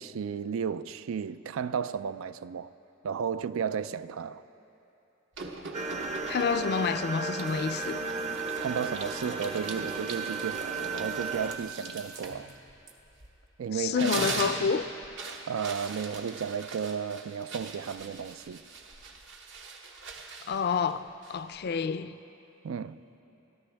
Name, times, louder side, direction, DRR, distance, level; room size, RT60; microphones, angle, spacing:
voice 1, 0.0-2.7 3.0-4.4 8.6-12.5 13.6-14.1 15.5-18.6 22.6-23.0, right 7 dB, 80° right, 0.4 m, -33 dB
sound 1, 5.3-6.9 7.4-13.4 13.8-21.6, right 4 dB, 60° right, 1.1 m, -41 dB
sound 2, 5.7-11.6, right 3 dB, 35° right, 0.7 m, -34 dB
voice 2, 6.3-8.1 13.7-14.9 20.5-21.0 21.3-22.2, left 6 dB, 50° left, 0.4 m, -28 dB
26.0 x 13.0 x 3.4 m
head